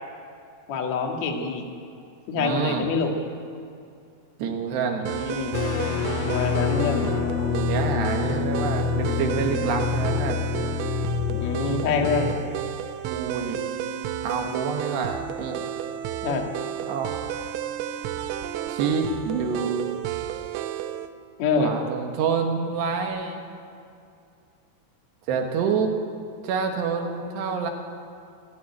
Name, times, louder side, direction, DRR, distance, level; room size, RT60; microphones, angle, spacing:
voice 1, 0.7-1.6 2.3-3.1 5.0-5.5 6.2-7.1 11.3-12.4 16.2-16.5 21.4-21.7, left 4 dB, 50° left, 1 dB, 2.5 m, -26 dB
voice 2, 2.4-2.9 4.4-5.1 7.5-10.4 13.1-13.7 14.2-15.6 16.9-17.1 18.7-20.0 21.6-23.5 25.3-25.9 26.4-27.7, right 5 dB, 70° right, 4 dB, 3.3 m, -27 dB
sound 1, 5.1-21.1, right 10 dB, 90° right, 3.3 m, -32 dB
sound 2, 5.5-12.4, left 7 dB, 85° left, 3.3 m, -27 dB
28.5 x 9.5 x 9.7 m, 2.4 s
omnidirectional pair, 5.4 m